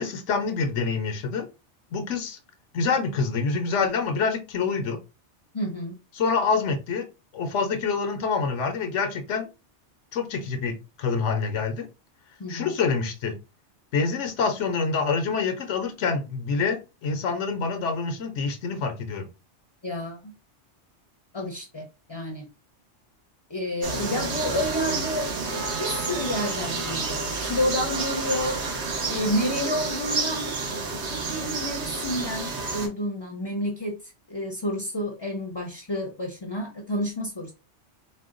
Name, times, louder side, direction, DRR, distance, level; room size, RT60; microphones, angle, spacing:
voice 1, 0.0-1.5 1.9-2.4 2.7-5.0 6.1-7.1 7.3-9.5 10.1-11.9 12.5-13.3 13.9-19.3, left 5 dB, 80° left, 6 dB, 1.0 m, -26 dB
voice 2, 5.5-5.9 12.4-12.7 19.8-20.3 21.3-22.5 23.5-28.6 29.1-30.5 31.1-37.5, left 1 dB, 30° left, 3 dB, 0.6 m, -30 dB
sound 1, 23.8-32.9, right 4 dB, 70° right, 1.3 m, -30 dB
4.3 x 2.2 x 3.7 m, 0.29 s
omnidirectional pair, 1.2 m